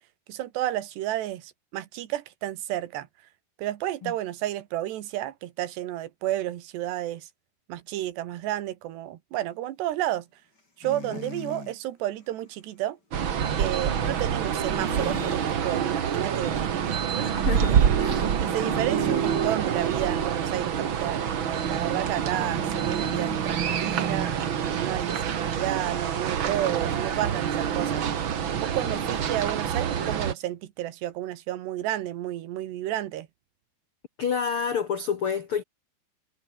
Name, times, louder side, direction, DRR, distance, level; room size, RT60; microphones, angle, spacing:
voice 1, 0.3-3.1 3.6-7.3 7.7-10.3 10.8-13.0 13.6-17.3 17.7-17.8 18.2-21.2 21.7-24.3 24.7-28.1 28.6-33.3, right 13 dB, 85° right, 3.7 m, -31 dB
sound 1, 10.8-11.7 14.6-15.5 15.9-16.2 18.5-19.4 22.3-23.5 26.6-26.7, left 2 dB, 25° left, 6.1 m, -39 dB
sound 2, 13.1-30.3, right 8 dB, 65° right, 1.2 m, -26 dB
voice 2, 17.3-18.2 28.9-29.1 34.2-35.6, left 7 dB, 70° left, 1.2 m, -29 dB
omnidirectional pair, 4.8 m